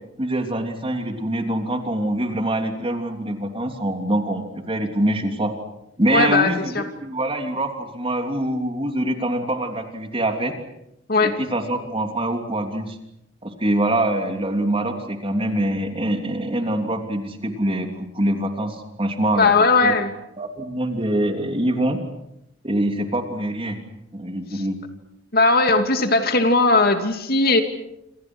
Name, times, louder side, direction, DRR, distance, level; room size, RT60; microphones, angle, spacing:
voice 1, 0.2-5.5 6.0-10.5 11.2-13.0 13.4-19.5 19.8-19.9 20.4-22.0 22.6-23.8 24.1-24.8, right 1 dB, 30° right, 5 dB, 3.2 m, -24 dB
voice 2, 6.1-6.9 11.1-11.4 19.4-20.1 25.3-27.6, left 3 dB, 50° left, 7 dB, 2.6 m, -18 dB
28.0 x 27.5 x 6.3 m, 0.83 s
head